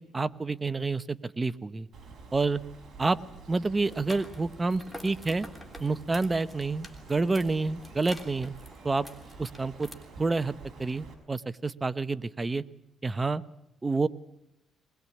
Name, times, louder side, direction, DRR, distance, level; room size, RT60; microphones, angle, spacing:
voice 1, 0.1-1.9 2.3-2.6 3.0-3.2 3.5-5.5 5.8-8.5 8.8-9.1 9.4-9.9 10.2-12.6 13.0-13.4 13.8-14.1, right 3 dB, 25° right, 14 dB, 0.9 m, -28 dB
Bird, 1.9-11.1, right 4 dB, 50° right, 5.6 m, -49 dB
sound 1, 3.8-9.9, equal, ahead, 3.5 m, -48 dB
21.5 x 21.0 x 8.5 m, 0.85 s
cardioid pair, 90°, 0 cm